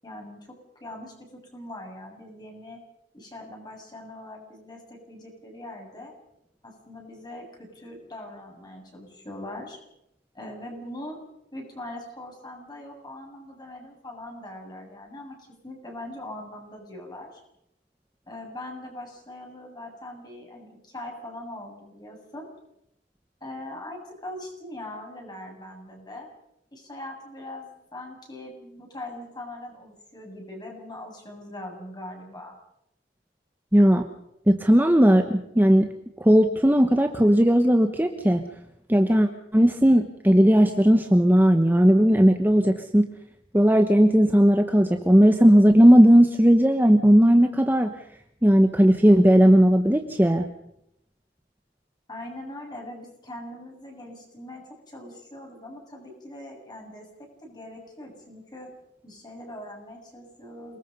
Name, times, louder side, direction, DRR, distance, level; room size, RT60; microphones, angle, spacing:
voice 1, 0.0-2.8 3.1-6.1 6.6-9.8 10.3-11.2 11.5-17.4 18.3-22.5 23.4-26.3 26.7-32.5 52.1-58.7 59.0-60.8, left 1 dB, 25° left, 1 dB, 7.5 m, -41 dB
voice 2, 33.7-34.0 34.5-35.9 36.2-38.4 38.9-43.1 43.5-47.9 48.4-50.4, equal, 10° right, 6 dB, 1.1 m, -17 dB
29.0 x 20.5 x 5.5 m, 0.80 s
head